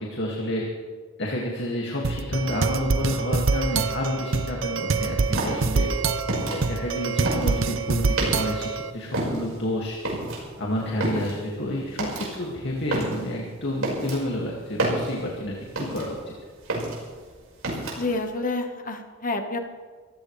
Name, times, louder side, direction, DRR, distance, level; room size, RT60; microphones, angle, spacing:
voice 1, 0.1-0.6 1.2-5.9 6.5-10.0 10.6-16.2, left 1 dB, 60° left, -2 dB, 2.3 m, -29 dB
sound 1, 2.0-8.9, right 4 dB, 70° right, 0.8 m, -25 dB
sound 2, 5.3-8.7 9.0-16.3 16.6-18.2, right 1 dB, 85° right, 5.3 m, -30 dB
voice 2, 11.3-12.2 18.0-19.6, left 2 dB, 40° left, 6 dB, 1.4 m, -30 dB
25.0 x 15.5 x 3.4 m, 1.5 s
head